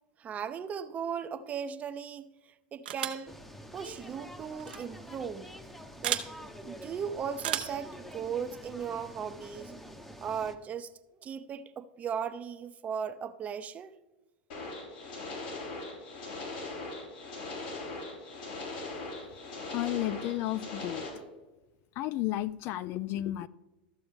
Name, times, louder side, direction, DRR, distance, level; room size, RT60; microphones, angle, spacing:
voice 1, 0.2-3.3 3.7-5.5 6.0-6.2 6.6-9.7 10.2-10.9 11.2-14.0, right 7 dB, 30° right, 0.6 m, -37 dB
sound 1, 2.9-3.3 4.6-4.8 6.0-6.3 7.4-7.8, right 10 dB, 80° right, 0.8 m, -33 dB
sound 2, 3.3-10.6, equal, 5° left, 0.8 m, -47 dB
sound 3, 14.5-21.1, left 2 dB, 75° left, 3.4 m, -40 dB
voice 2, 19.7-21.1 22.0-23.5, left 14 dB, 50° left, 0.3 m, -32 dB
13.5 x 7.0 x 3.4 m
hypercardioid pair, 110°, 5 cm